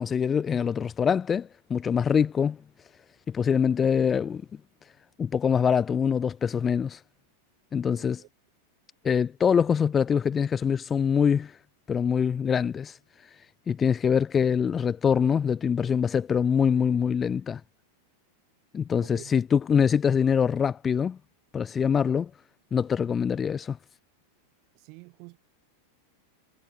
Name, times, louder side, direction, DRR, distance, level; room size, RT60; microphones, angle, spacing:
voice 1, 0.0-2.6 3.3-4.4 5.2-7.0 7.7-8.2 9.0-11.6 11.9-13.0 13.7-17.6 18.7-21.2 21.5-22.3 22.7-23.8, left 7 dB, 20° left, 0.4 m, -24 dB
voice 2, 8.0-8.3 19.0-19.3 24.7-25.4, right 32 dB, 45° right, 5.6 m, -48 dB
figure-of-eight pair, 90°, 0 cm